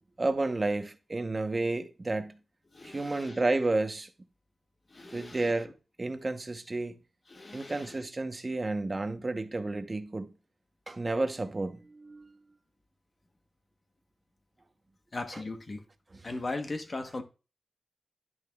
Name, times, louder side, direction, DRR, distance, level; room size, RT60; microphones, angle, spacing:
voice 1, 0.2-2.4 2.8-4.1 5.1-7.0 7.5-10.3 10.9-12.5 15.3-15.4 16.1-16.2, right 2 dB, 25° right, 0.8 m, -31 dB
voice 2, 2.7-3.5 4.9-5.6 7.3-8.0 15.1-15.9 16.2-17.2, left 2 dB, 30° left, 1.0 m, -38 dB
10.5 x 6.6 x 2.3 m
wide cardioid pair, 135°, 0 cm